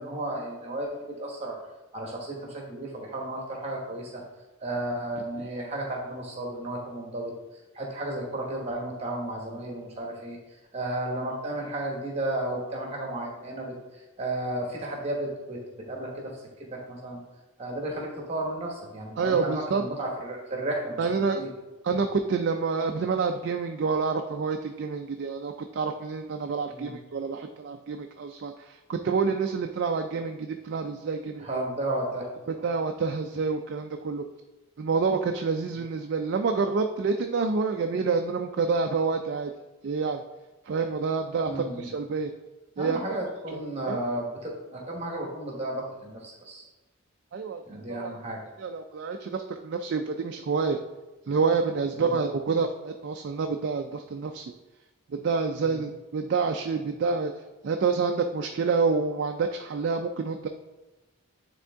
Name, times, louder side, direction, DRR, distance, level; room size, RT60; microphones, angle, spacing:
voice 1, 0.0-1.6 1.9-4.2 4.6-7.3 7.7-10.4 10.7-15.6 15.9-17.2 17.6-21.5 26.7-27.0 31.4-32.3 41.4-41.9 42.8-46.6 47.6-48.4 52.0-52.2 55.6-55.8, right 1 dB, 30° right, -1 dB, 1.2 m, -33 dB
voice 2, 19.2-19.9 21.0-21.4 21.8-31.6 32.5-34.2 34.8-39.5 39.8-40.2 40.7-42.3 42.8-43.0 43.5-43.6 43.9-44.0 47.3-48.1 48.6-50.8 51.3-54.5 55.1-57.3 57.6-60.5, right 4 dB, 50° right, 5 dB, 0.3 m, -28 dB
9.3 x 3.6 x 3.5 m, 1.1 s
head